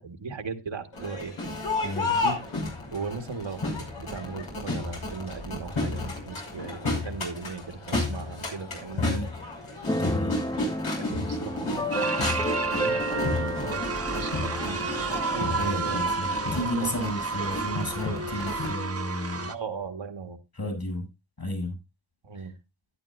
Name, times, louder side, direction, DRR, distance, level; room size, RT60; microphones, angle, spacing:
voice 1, 0.0-1.3 2.0-2.4 2.9-9.1 11.1-16.0 16.6-16.9 18.6-18.7 19.5-20.4 22.2-22.5, right 4 dB, 60° right, 1.8 m, -37 dB
Crowd, 0.9-18.7, left 2 dB, 70° left, 6.1 m, -32 dB
voice 2, 1.8-2.2 9.0-9.3 9.9-10.4 11.2-11.3 15.6-19.5 20.6-21.1 21.4-21.7 22.3-22.5, left 1 dB, 45° left, 7.4 m, -33 dB
Keyboard (musical), 9.9-17.4, equal, 10° left, 0.8 m, -33 dB
sound 1, 11.9-19.5, right 4 dB, 30° right, 1.2 m, -31 dB
13.0 x 10.5 x 2.6 m
cardioid pair, 50°, 50 cm